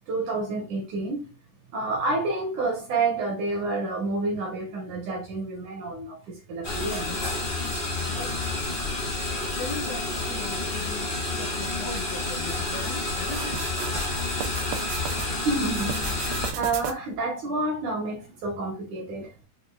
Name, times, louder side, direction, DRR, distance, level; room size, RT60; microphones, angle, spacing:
voice 1, 0.0-1.3 1.7-7.2 15.3-19.3, right 3 dB, 70° right, 2.0 m, -29 dB
sound 1, 6.6-16.5, left 2 dB, 65° left, 0.5 m, -29 dB
voice 2, 9.6-13.6, left 3 dB, 80° left, 1.6 m, -38 dB
sound 2, 13.2-15.3 15.7-17.2, right 9 dB, 90° right, 2.8 m, -35 dB
6.8 x 2.5 x 2.3 m
omnidirectional pair, 4.6 m